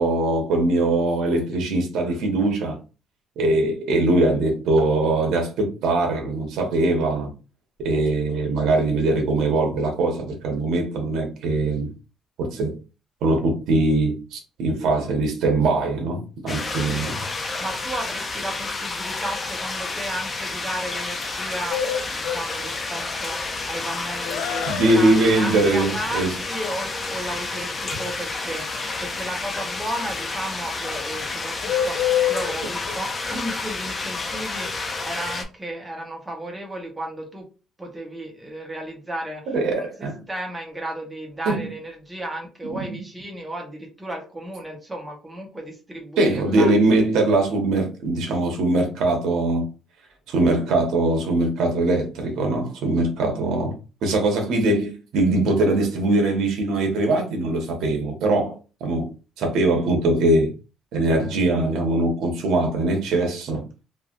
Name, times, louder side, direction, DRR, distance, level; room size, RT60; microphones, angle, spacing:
voice 1, 0.0-2.8 3.4-7.3 7.8-11.9 12.4-12.8 13.2-17.2 24.7-26.4 39.5-40.2 41.5-41.7 46.2-49.7 50.3-53.7 54.0-59.1 59.4-60.5 60.9-63.6, right 2 dB, 80° right, 1.1 m, -21 dB
sound 1, 16.5-35.4, left 3 dB, 30° left, 0.5 m, -30 dB
voice 2, 16.9-21.8 22.1-28.7 29.0-37.5 37.8-46.7, right 1 dB, 15° right, 1.0 m, -34 dB
Bird, 21.7-34.7, left 10 dB, 85° left, 0.4 m, -30 dB
3.3 x 2.6 x 2.4 m
cardioid pair, 125°, 0 cm